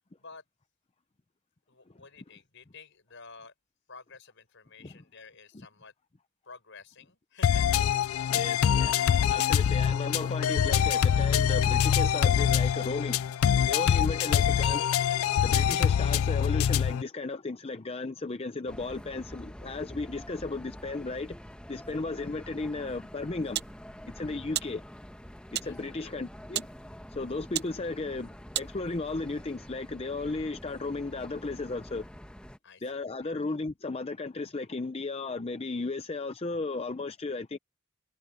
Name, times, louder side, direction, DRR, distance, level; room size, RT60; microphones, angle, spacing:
voice 1, 1.7-3.5 3.9-5.9 6.5-7.8 21.6-22.0 25.5-26.1 32.6-33.4, left 4 dB, 60° left, 7.2 m, -52 dB
sound 1, 7.4-17.0, left 8 dB, 80° left, 0.4 m, -24 dB
voice 2, 8.3-13.2 13.6-14.9 15.4-21.4 21.7-23.7 24.1-24.8 25.5-26.7 27.1-32.1 32.8-37.6, left 3 dB, 30° left, 0.6 m, -35 dB
sound 2, 18.7-32.6, equal, 5° left, 1.1 m, -46 dB
sound 3, 22.9-29.2, right 12 dB, 50° right, 0.7 m, -40 dB
head